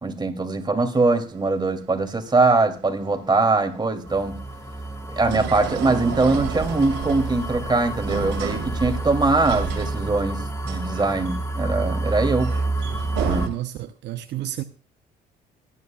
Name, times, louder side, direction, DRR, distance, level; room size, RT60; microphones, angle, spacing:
voice 1, 0.0-4.4 5.2-12.5 13.2-13.5, right 3 dB, 25° right, 2.6 m, -22 dB
sound 1, 1.0-13.5, right 8 dB, 85° right, 2.3 m, -34 dB
sound 2, 4.1-13.5, right 2 dB, 15° left, 1.3 m, -29 dB
voice 2, 13.4-14.6, right 13 dB, 65° right, 0.7 m, -32 dB
24.0 x 9.9 x 2.3 m
supercardioid pair, 70°, 19 cm